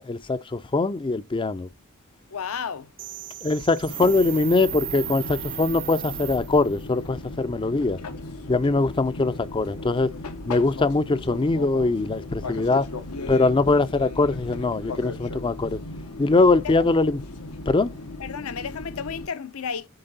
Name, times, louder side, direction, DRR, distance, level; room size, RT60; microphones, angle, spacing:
voice 1, 0.0-1.7 3.4-8.0 8.5-10.1 10.5-12.9 13.3-15.8 16.2-17.2 17.7-17.9, left 3 dB, 20° left, 0.4 m, -22 dB
voice 2, 2.3-2.9 16.6-16.7 18.2-19.9, left 6 dB, 70° left, 0.6 m, -32 dB
sound 1, 3.0-6.9, right 13 dB, 40° right, 0.5 m, -36 dB
Fixed-wing aircraft airplane, 3.9-19.3, left 2 dB, 85° left, 1.0 m, -37 dB
7.9 x 3.6 x 4.0 m
head